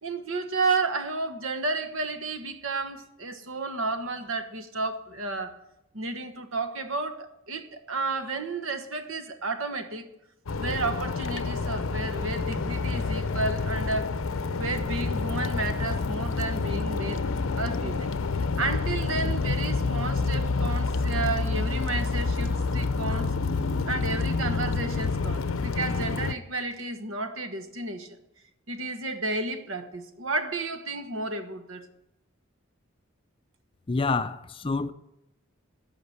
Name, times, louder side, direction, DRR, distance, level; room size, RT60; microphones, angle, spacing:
voice 1, 0.0-5.6 5.9-10.1 10.6-14.1 14.5-17.2 17.6-18.1 18.6-23.3 23.8-28.1 28.7-31.9, right 3 dB, 70° right, 1.3 m, -32 dB
sound 1, 10.5-26.3, left 3 dB, 75° left, 0.6 m, -28 dB
voice 2, 33.9-34.9, left 3 dB, 25° left, 0.4 m, -27 dB
14.0 x 5.8 x 8.0 m
head